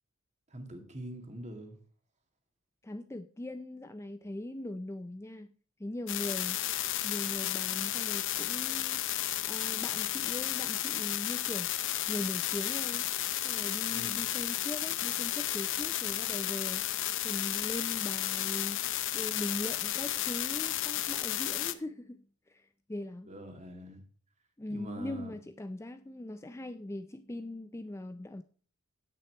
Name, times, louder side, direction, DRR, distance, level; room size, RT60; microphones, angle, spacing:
voice 1, 0.5-1.8 13.9-14.2 23.2-24.0 24.7-25.3, equal, 30° right, 2.1 m, -43 dB
voice 2, 2.8-5.5 5.8-6.6 7.0-11.7 12.1-13.1 13.4-18.8 19.1-23.3 24.6-28.4, left 1 dB, 10° left, 0.4 m, -40 dB
sound 1, 6.1-21.7, left 13 dB, 55° left, 0.7 m, -33 dB
9.8 x 8.8 x 4.5 m
head